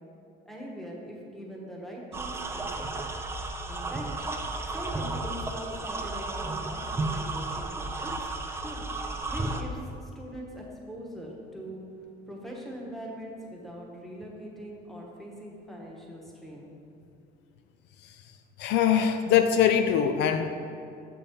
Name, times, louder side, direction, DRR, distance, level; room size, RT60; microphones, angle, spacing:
voice 1, 0.4-2.6 2.9-3.0 3.7-4.1 4.7-8.1 8.6-8.8 9.3-11.9 12.3-16.7, equal, ahead, -3 dB, 1.2 m, -42 dB
sound 1, 2.1-9.6, right 2 dB, 15° right, 0.4 m, -33 dB
voice 2, 18.6-20.5, left 8 dB, 70° left, 8 dB, 0.4 m, -23 dB
6.9 x 5.3 x 4.3 m, 2.6 s
cardioid pair, 125°, 18 cm